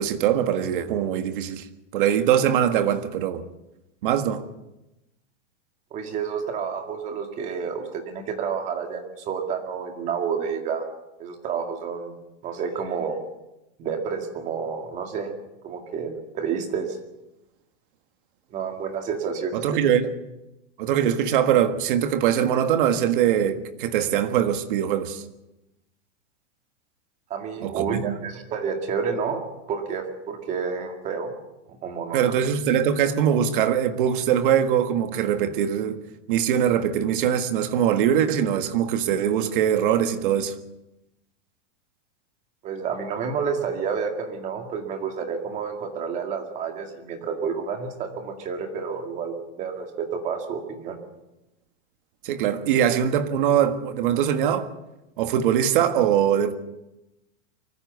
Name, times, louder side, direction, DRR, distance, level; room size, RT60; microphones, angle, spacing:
voice 1, 0.0-1.6 1.9-3.4 4.0-4.4 19.5-20.1 20.8-25.2 27.6-28.2 32.1-36.0 36.3-40.5 52.2-54.7 55.2-56.5, right 9 dB, 45° right, 1.7 m, -22 dB
voice 2, 5.9-10.9 11.2-12.2 12.4-13.2 13.8-15.3 15.6-17.0 18.5-19.9 27.3-29.4 29.7-31.3 31.8-32.3 42.6-51.0, right 6 dB, 20° right, 2.1 m, -30 dB
24.0 x 15.0 x 8.2 m
supercardioid pair, 175°, 36 cm